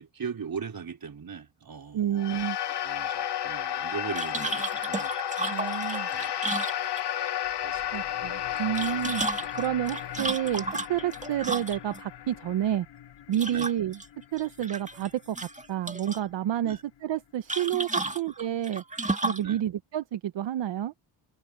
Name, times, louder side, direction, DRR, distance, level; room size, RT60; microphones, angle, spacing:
voice 1, 0.0-2.3 2.8-5.1 6.1-6.4 7.6-7.8 13.5-13.7 16.6-16.8 18.0-18.2 19.4-19.6, right 6 dB, 50° right, 4.5 m, -39 dB
voice 2, 1.9-2.6 5.5-6.1 7.9-9.2 9.6-12.9 13.3-14.0 14.3-15.4 15.7-18.8 19.2-20.9, right 11 dB, 75° right, 0.9 m, -29 dB
sound 1, 2.1-12.7, left 10 dB, 65° left, 1.2 m, -33 dB
sound 2, 4.2-7.3 8.6-12.0 13.3-14.1 14.4-15.1 15.4-16.2 17.5-19.5, right 2 dB, 15° right, 1.8 m, -33 dB
sound 3, 7.4-18.4, left 10 dB, 80° left, 3.2 m, -48 dB
cardioid pair, 65°, 43 cm